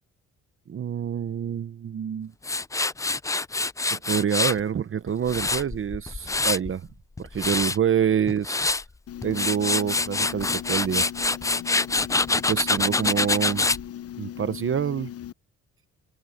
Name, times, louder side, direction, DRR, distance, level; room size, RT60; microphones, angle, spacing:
voice 1, 0.7-2.3 3.9-6.9 7.2-8.6 9.2-11.1 12.5-13.7 14.2-15.1, right 8 dB, 45° right, 1.0 m, -26 dB
Tools, 2.4-4.6 5.1-6.7 7.2-7.8 8.3-8.8 9.2-13.8, left 3 dB, 10° left, 0.4 m, -25 dB
sound 1, 9.1-15.3, left 11 dB, 50° left, 0.8 m, -38 dB
cardioid pair, 90°, 30 cm